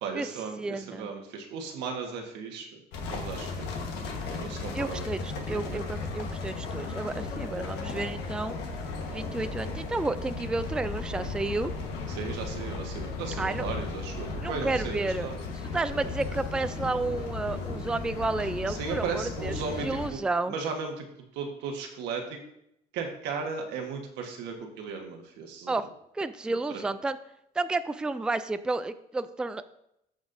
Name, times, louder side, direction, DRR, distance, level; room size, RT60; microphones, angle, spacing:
voice 1, 0.0-2.7 3.1-3.7 4.4-5.1 5.5-5.9 12.1-15.4 18.7-20.2 20.5-21.1 21.3-22.4 22.9-25.8 26.7-26.8, right 5 dB, 90° right, 3 dB, 1.4 m, -36 dB
voice 2, 0.6-1.1 4.7-8.6 9.0-11.7 13.4-13.7 14.4-15.3 15.7-19.5 19.8-20.5 25.7-25.9 26.1-27.2 27.6-29.6, right 3 dB, 5° right, 11 dB, 0.3 m, -31 dB
sound 1, 2.9-20.1, left 4 dB, 85° left, 1.4 m, -35 dB
14.5 x 5.2 x 2.7 m, 0.78 s
cardioid pair, 110°, 17 cm